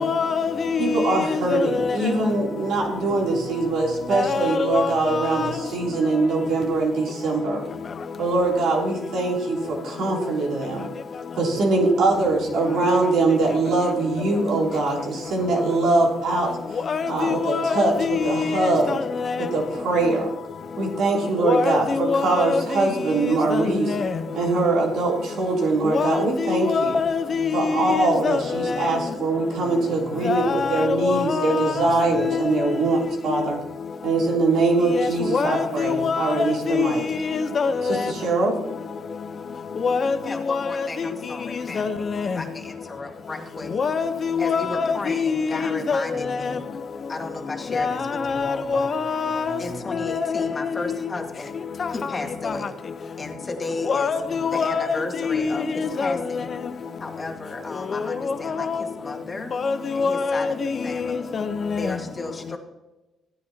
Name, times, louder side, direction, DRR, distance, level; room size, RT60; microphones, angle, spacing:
voice 1, 0.0-2.0 4.1-5.5 16.9-19.5 21.4-22.9 23.5-24.1 25.8-28.7 30.2-31.9 32.2-32.7 33.3-33.4 34.9-38.1 39.8-40.2 40.5-41.1 41.8-42.4 43.7-46.5 47.7-49.6 49.9-50.5 51.8-51.9 52.4-52.5 53.9-56.2 57.9-58.8 59.5-61.9, left 5 dB, 45° left, 0.8 m, -25 dB
voice 2, 0.8-7.6 8.2-10.9 11.4-16.5 17.1-19.0 19.5-20.3 20.8-23.9 24.3-27.0 27.5-33.6 34.0-37.0 37.9-38.6, right 3 dB, 80° right, 3.1 m, -23 dB
voice 3, 40.2-43.7 44.4-46.6 47.1-48.9 49.6-51.6 51.9-52.7 53.2-54.1 54.5-56.5 57.0-59.5 59.9-60.6 60.8-61.4 61.8-62.6, left 3 dB, 30° left, 1.8 m, -34 dB
15.0 x 9.7 x 2.9 m
cardioid pair, 90°, 0 cm